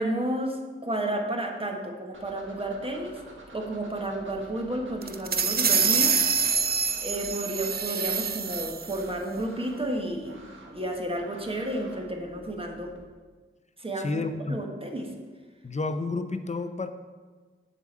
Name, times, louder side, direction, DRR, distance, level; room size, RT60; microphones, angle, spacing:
voice 1, 0.0-3.2 3.5-6.2 7.0-10.4 10.7-13.0 13.8-14.2 14.5-15.1, right 1 dB, 25° right, 1 dB, 1.4 m, -31 dB
sound 1, 2.1-13.0, right 2 dB, 70° right, 1.6 m, -50 dB
sound 2, 5.0-9.0, right 6 dB, 50° right, 0.5 m, -26 dB
voice 2, 14.0-14.6 15.6-16.9, left 3 dB, 35° left, 8 dB, 0.7 m, -30 dB
7.4 x 5.2 x 7.4 m, 1.4 s
wide cardioid pair, 75°, 21 cm